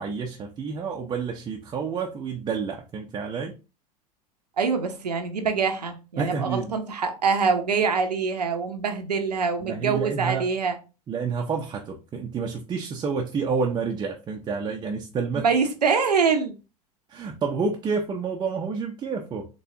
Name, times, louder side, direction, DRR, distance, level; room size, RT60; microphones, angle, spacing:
voice 1, 0.0-3.6 6.2-6.7 9.6-10.5 11.1-15.5 17.1-19.5, right 5 dB, 20° right, 0.5 m, -29 dB
voice 2, 4.6-10.8 15.4-16.5, right 5 dB, 80° right, 0.6 m, -24 dB
4.1 x 3.0 x 2.6 m
figure-of-eight pair, 80°, 20 cm